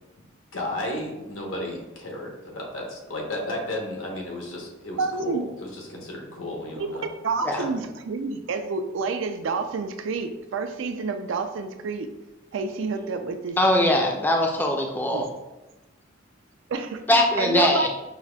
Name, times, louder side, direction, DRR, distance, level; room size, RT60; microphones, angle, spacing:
voice 1, 0.5-7.0 7.6-7.8, left 1 dB, 85° left, -1 dB, 1.0 m, -33 dB
voice 2, 5.0-5.5 6.8-6.9 7.2-12.1 12.5-14.0 15.1-15.3 16.7-17.9, right 4 dB, 75° right, 7 dB, 0.4 m, -29 dB
voice 3, 13.6-15.3 17.1-17.9, left 1 dB, 10° left, 1 dB, 0.3 m, -21 dB
5.6 x 2.4 x 2.2 m, 1.0 s
head